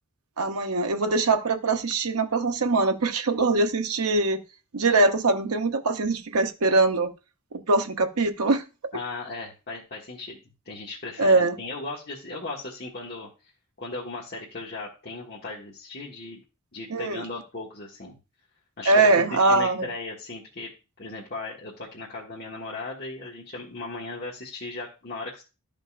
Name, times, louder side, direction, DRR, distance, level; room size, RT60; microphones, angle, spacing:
voice 1, 0.4-4.4 4.7-7.1 7.5-8.6 11.2-11.6 16.9-17.2 18.9-19.9, right 3 dB, 80° right, 6 dB, 0.9 m, -22 dB
voice 2, 8.9-10.4 10.6-13.3 13.8-16.4 16.7-18.2 18.8-20.7 21.0-25.4, left 3 dB, 45° left, -5 dB, 1.6 m, -37 dB
12.5 x 5.3 x 2.5 m, 0.29 s
head